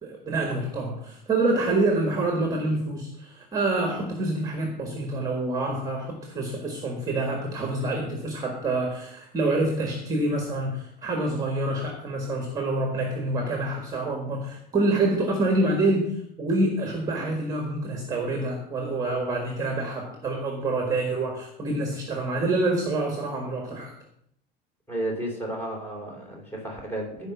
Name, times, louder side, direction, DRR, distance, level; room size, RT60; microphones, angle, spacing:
voice 1, 0.0-23.9, right 2 dB, 15° right, 2 dB, 1.7 m, -27 dB
voice 2, 24.9-27.3, right 1 dB, 10° left, -1 dB, 3.7 m, -32 dB
15.0 x 5.2 x 7.1 m, 0.73 s
cardioid pair, 170°, 20 cm